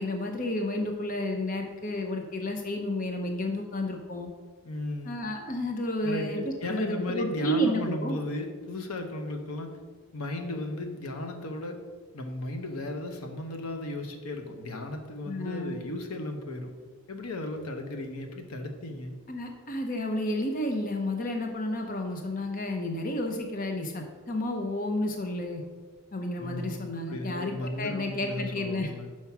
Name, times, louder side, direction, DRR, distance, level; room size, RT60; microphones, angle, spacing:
voice 1, 0.0-4.3 5.0-8.2 15.3-15.7 19.3-25.6 26.1-28.9, left 1 dB, 35° left, 4 dB, 0.6 m, -31 dB
voice 2, 4.6-5.2 6.0-9.8 10.1-11.8 12.1-16.7 17.1-19.1 26.4-29.1, left 2 dB, 80° left, 5 dB, 0.8 m, -35 dB
5.9 x 4.5 x 5.8 m, 1.4 s
head